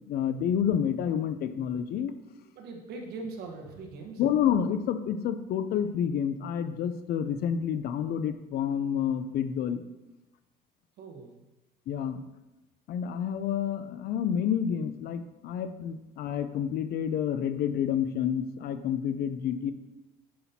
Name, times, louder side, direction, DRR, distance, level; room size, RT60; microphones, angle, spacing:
voice 1, 0.1-2.1 4.2-9.8 11.9-12.2 12.9-19.7, left 8 dB, 65° left, 11 dB, 0.5 m, -29 dB
voice 2, 2.6-4.2 11.0-11.4, right 3 dB, 75° right, 2 dB, 1.2 m, -41 dB
8.5 x 5.7 x 2.8 m, 1.0 s
cardioid pair, 110°, 17 cm